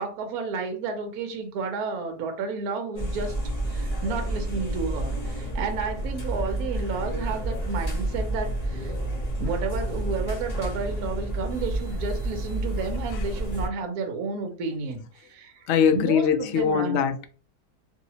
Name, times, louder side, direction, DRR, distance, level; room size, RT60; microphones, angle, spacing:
voice 1, 0.0-3.4 3.7-8.9 9.4-17.0, right 4 dB, 65° right, 1.1 m, -31 dB
sound 1, 3.0-13.7, right 1 dB, 30° left, 0.8 m, -30 dB
voice 2, 15.7-17.3, left 7 dB, 70° left, 0.7 m, -22 dB
3.0 x 2.8 x 2.8 m
omnidirectional pair, 1.8 m